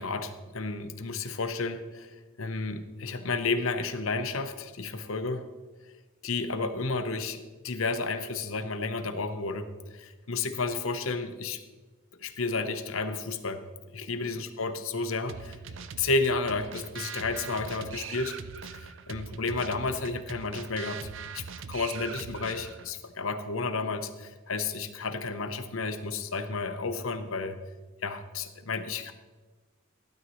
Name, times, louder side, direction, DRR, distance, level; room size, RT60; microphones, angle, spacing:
voice 1, 0.0-2.1 2.4-5.4 6.2-11.6 12.2-13.6 13.9-15.6 16.0-18.4 18.6-18.8 19.1-21.0 21.3-27.6 28.0-29.1, left 3 dB, 80° left, 9 dB, 0.9 m, -32 dB
sound 1, 15.3-22.9, right 6 dB, 65° right, 0.6 m, -42 dB
16.0 x 12.0 x 3.1 m, 1.3 s
head